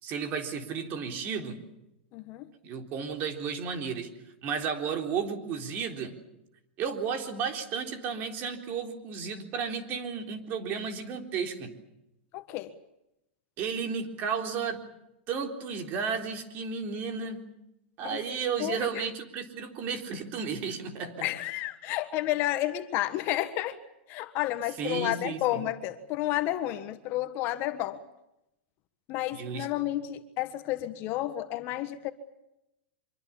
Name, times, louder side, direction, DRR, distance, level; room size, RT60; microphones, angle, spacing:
voice 1, 0.0-1.6 2.6-4.1 4.4-6.1 6.8-11.7 13.6-14.8 15.3-17.4 18.0-21.3 24.8-25.7 29.3-29.7, right 6 dB, 30° right, 5 dB, 3.8 m, -33 dB
voice 2, 2.1-2.5 12.3-12.7 18.0-18.2 18.6-19.0 21.2-23.8 24.1-28.0 29.1-32.1, left 14 dB, 35° left, 9 dB, 1.5 m, -31 dB
25.5 x 24.0 x 7.2 m, 0.87 s
supercardioid pair, 155°, 6 cm